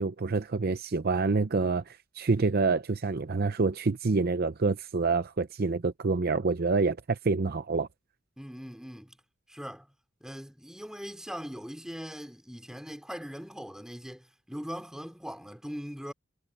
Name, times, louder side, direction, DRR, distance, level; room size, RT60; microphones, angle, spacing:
voice 1, 0.0-7.9, right 3 dB, 50° right, 0.6 m, -27 dB
voice 2, 8.4-9.2 9.5-9.9 10.2-16.1, equal, 5° right, 3.4 m, -41 dB
head